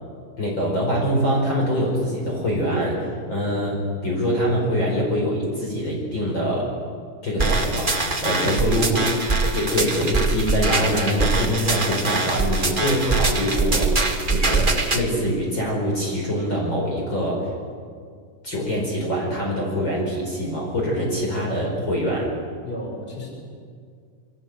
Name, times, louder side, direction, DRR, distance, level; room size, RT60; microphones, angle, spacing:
voice 1, 0.4-6.7 7.2-7.9 8.2-9.0 9.5-17.5 18.4-22.3, equal, 35° left, -2 dB, 5.7 m, -24 dB
sound 1, 7.4-15.0, right 3 dB, 25° right, 1.2 m, -23 dB
voice 2, 8.2-9.0 9.4-9.6 22.6-23.3, left 1 dB, 15° left, 0 dB, 5.6 m, -32 dB
27.0 x 25.0 x 7.8 m, 2.1 s
omnidirectional pair, 3.8 m